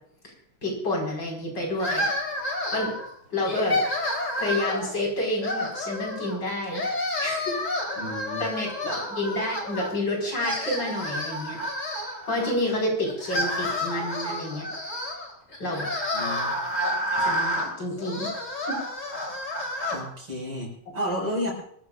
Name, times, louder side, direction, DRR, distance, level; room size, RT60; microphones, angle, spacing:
voice 1, 0.6-2.1 2.7-2.9 3.3-3.8 4.4-6.8 7.2-7.6 8.4-8.7 9.1-11.6 12.3-14.7 15.6-15.9 17.1-18.3 18.7-18.8, left 1 dB, 55° left, -1 dB, 5.8 m, -29 dB
sound 1, 1.8-3.1 3.5-4.9 5.4-6.4 6.7-9.9 10.2-12.5 13.1-20.0, left 1 dB, 35° left, 4.0 m, -29 dB
voice 2, 8.0-8.5 8.8-9.0 16.1-16.6 19.9-21.5, equal, 75° right, 0 dB, 6.4 m, -32 dB
25.0 x 14.5 x 2.5 m, 0.68 s
omnidirectional pair, 2.4 m